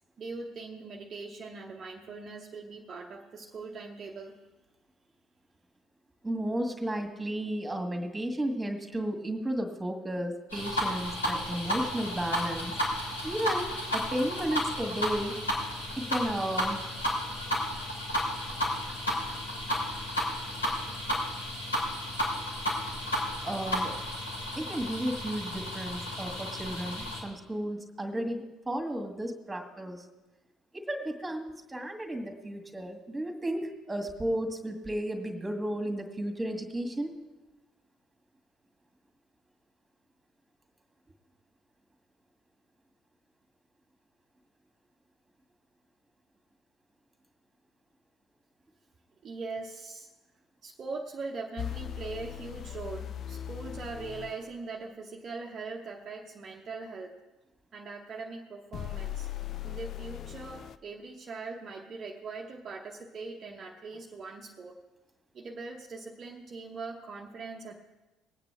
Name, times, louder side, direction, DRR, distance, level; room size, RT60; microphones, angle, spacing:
voice 1, 0.2-4.4 49.2-50.1 50.6-57.2 57.7-59.3 59.6-64.8 65.3-67.7, right 4 dB, 40° right, 0 dB, 0.9 m, -41 dB
voice 2, 6.2-12.7 13.2-15.4 16.0-16.8 23.4-24.0 24.6-30.1 30.7-37.1, right 1 dB, 15° right, 5 dB, 2.0 m, -33 dB
sound 1, 10.5-27.2, left 1 dB, 85° left, 3.0 m, -33 dB
sound 2, 51.6-54.4 58.7-60.8, left 11 dB, 45° left, 0.4 m, -38 dB
20.5 x 8.8 x 3.5 m, 1.1 s
figure-of-eight pair, 55°, 0 cm